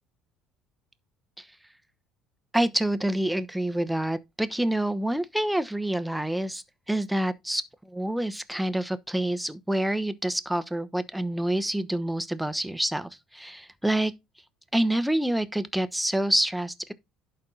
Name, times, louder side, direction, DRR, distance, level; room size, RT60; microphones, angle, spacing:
voice 1, 2.5-14.1 14.7-16.9, right 1 dB, 5° right, 1.0 m, -27 dB
11.0 x 4.4 x 3.9 m
hypercardioid pair, 70°, 0 cm